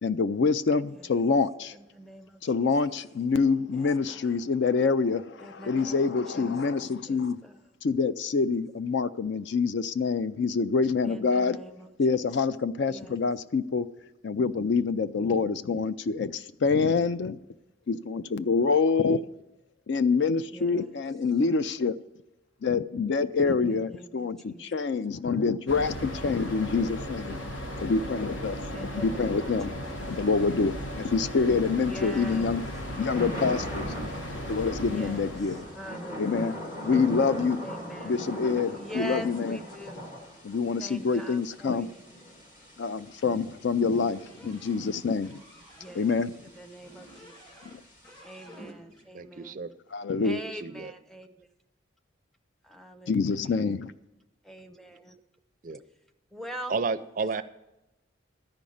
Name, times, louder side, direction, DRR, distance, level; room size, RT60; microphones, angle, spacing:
voice 1, 0.0-1.8 2.4-7.4 7.8-11.6 12.0-13.9 14.2-17.4 17.9-19.2 19.9-22.0 22.6-27.4 27.8-28.6 28.9-29.7 30.1-32.6 33.0-33.9 34.5-35.6 36.2-36.6 36.8-37.6 38.0-39.6 40.4-41.9 42.8-45.4 46.0-46.3 49.9-50.4 53.1-53.9, left 4 dB, 60° left, 0.4 m, -26 dB
voice 2, 0.9-1.2 1.7-3.0 3.7-4.4 5.4-6.8 7.1-7.6 11.0-11.9 12.9-13.2 20.5-20.9 23.5-24.9 28.7-30.1 31.8-32.6 34.9-36.7 37.6-38.3 38.7-40.1 40.8-42.0 45.8-46.2 46.4-47.4 48.2-49.6 50.2-51.5 52.6-53.7 54.4-55.2 56.3-56.8 57.2-57.4, right 1 dB, ahead, 0.6 m, -44 dB
sound 1, 25.7-35.8, equal, 80° left, 1.3 m, -36 dB
Thunder / Rain, 30.0-48.2, equal, 40° left, 2.0 m, -42 dB
sound 2, 43.8-46.0 46.8-47.8 48.0-49.1, right 1 dB, 20° left, 2.3 m, -51 dB
voice 3, 49.1-49.7 50.4-50.9 55.6-55.8 56.7-57.4, right 4 dB, 40° right, 0.4 m, -32 dB
13.0 x 5.2 x 8.5 m
head